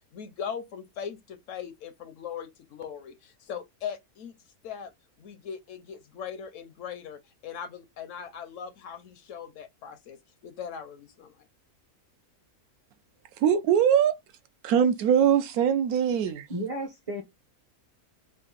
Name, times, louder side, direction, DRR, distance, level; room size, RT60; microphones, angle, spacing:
voice 1, 0.0-4.3 4.6-4.9 5.2-10.2 10.4-11.4, left 7 dB, 70° left, 0.8 m, -39 dB
voice 2, 13.4-14.2 14.6-16.5, right 8 dB, 75° right, 1.1 m, -22 dB
voice 3, 16.5-17.2, right 1 dB, 40° right, 0.5 m, -33 dB
3.6 x 2.5 x 3.8 m
omnidirectional pair, 1.6 m